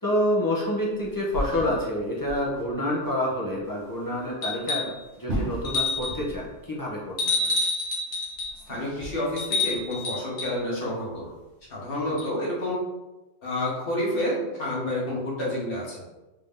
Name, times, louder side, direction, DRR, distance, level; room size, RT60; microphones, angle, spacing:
voice 1, 0.0-7.5, left 1 dB, 25° left, -5 dB, 0.5 m, -28 dB
sound 1, 0.7-2.7 3.0-3.1 3.5-3.6 5.0-6.7 6.9-7.0 7.9-9.9, equal, 65° right, 1.1 m, -36 dB
sound 2, 4.4-5.0 5.6-6.3 7.2-8.6 9.4-10.6 12.2-12.3, left 3 dB, 90° left, 1.4 m, -28 dB
voice 2, 8.7-11.3 11.7-12.8 13.4-16.0, left 1 dB, 50° left, -5 dB, 1.3 m, -29 dB
3.4 x 2.7 x 3.6 m, 1.1 s
omnidirectional pair, 1.3 m